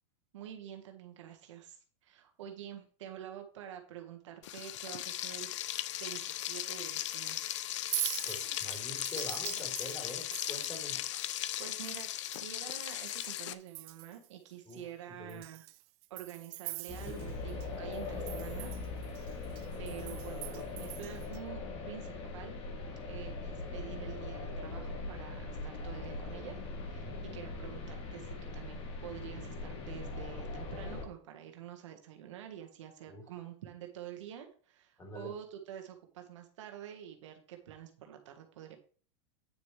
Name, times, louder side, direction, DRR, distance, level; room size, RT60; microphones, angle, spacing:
voice 1, 0.3-5.5 6.0-7.5 11.6-15.6 16.1-18.7 19.3-19.5 19.8-22.6 23.1-38.8, right 10 dB, 80° right, 4 dB, 1.6 m, -47 dB
Frying (food), 4.4-13.5, left 13 dB, 80° left, 0.6 m, -37 dB
Chink clink, 7.7-13.4 13.7-14.3 14.7-14.8 15.3-17.7 17.9-21.4, right 20 dB, 55° right, 0.5 m, -43 dB
voice 2, 8.2-11.0 14.6-15.4 18.3-18.4 26.9-27.2 33.1-33.2 35.0-35.3, left 2 dB, 20° left, 2 dB, 3.4 m, -46 dB
sound 1, 16.9-31.0, left 3 dB, 35° left, 2.1 m, -41 dB
9.2 x 6.5 x 3.3 m, 0.42 s
supercardioid pair, 125°, 15 cm